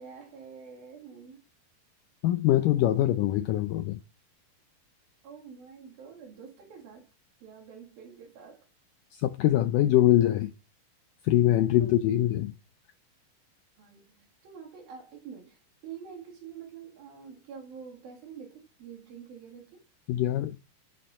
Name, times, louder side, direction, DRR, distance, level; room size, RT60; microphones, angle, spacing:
voice 1, 0.0-1.4 5.2-7.1 7.4-8.7 11.8-11.9 13.8-19.8, right 7 dB, 70° right, 4.3 m, -47 dB
voice 2, 2.2-4.0 9.1-10.5 11.2-12.5 20.1-20.6, left 13 dB, 80° left, 1.9 m, -23 dB
11.0 x 6.3 x 5.5 m
omnidirectional pair, 4.4 m